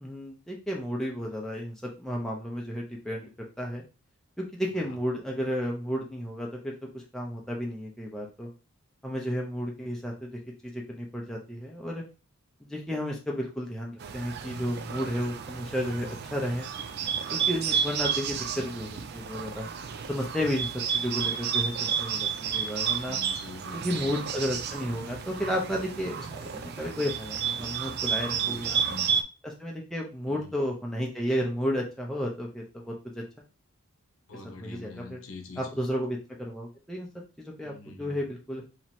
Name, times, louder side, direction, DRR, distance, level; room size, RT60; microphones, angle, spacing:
voice 1, 0.0-3.2 3.6-3.8 4.4-8.5 9.0-12.0 12.7-16.7 17.3-19.7 20.1-23.2 23.7-28.8 29.4-33.2 34.6-35.2 35.6-37.1 37.4-38.6, equal, ahead, -2 dB, 0.6 m, -32 dB
Bird, 14.0-29.2, right 7 dB, 45° right, 0.3 m, -31 dB
voice 2, 23.1-24.2 28.3-29.2 30.3-30.5 34.3-35.8 37.6-38.3, left 3 dB, 65° left, 5 dB, 0.8 m, -45 dB
3.0 x 2.8 x 4.2 m, 0.32 s
head